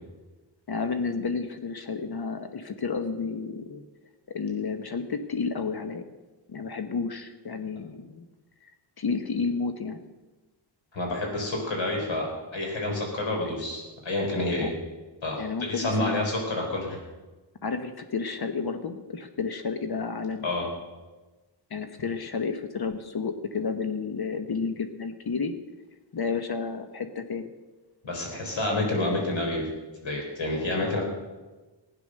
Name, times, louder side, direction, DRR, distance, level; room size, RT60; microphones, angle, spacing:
voice 1, 0.7-3.8 4.3-6.0 6.5-8.3 8.6-8.7 9.0-10.0 14.6-14.7 15.4-16.2 17.6-20.5 21.7-25.5 26.1-27.5, left 5 dB, 55° left, 8 dB, 1.1 m, -31 dB
voice 2, 10.9-14.7 15.2-17.0 20.4-20.7 28.0-29.6 30.0-31.0, left 2 dB, 80° left, 0 dB, 4.5 m, -29 dB
16.0 x 9.8 x 6.5 m, 1.2 s
wide cardioid pair, 120°, 45 cm